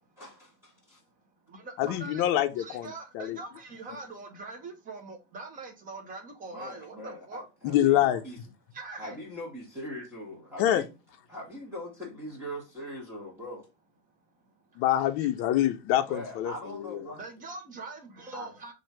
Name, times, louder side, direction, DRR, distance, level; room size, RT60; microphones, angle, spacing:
voice 1, 0.2-1.0 6.5-8.4 9.0-10.9 11.3-13.7 16.1-17.2 18.3-18.5, equal, 10° right, 1.4 m, -41 dB
voice 2, 0.7-1.1 1.4-2.3 2.5-7.5 8.7-9.2 14.3-14.8 17.2-18.7, right 3 dB, 30° right, 1.0 m, -43 dB
voice 3, 1.8-3.4 7.6-8.2 10.6-10.8 14.8-17.0, left 12 dB, 50° left, 0.5 m, -26 dB
3.1 x 2.5 x 4.2 m
supercardioid pair, 120°, 29 cm